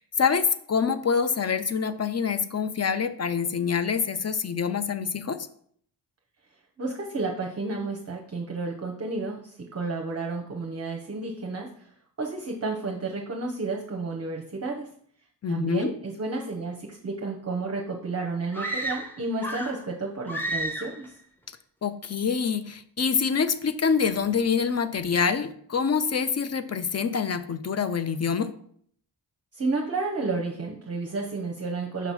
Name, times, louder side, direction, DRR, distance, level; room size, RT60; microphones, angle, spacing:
voice 1, 0.0-5.4 15.4-15.9 21.8-28.5, left 6 dB, 35° left, 12 dB, 0.4 m, -26 dB
voice 2, 6.8-11.9 12.2-14.9 15.5-21.1 29.5-32.1, right 3 dB, 35° right, 1 dB, 0.7 m, -31 dB
sound 1, 18.5-19.9 20.3-21.1, right 1 dB, 5° left, 0.8 m, -32 dB
5.9 x 2.9 x 5.5 m, 0.63 s
wide cardioid pair, 75°, 46 cm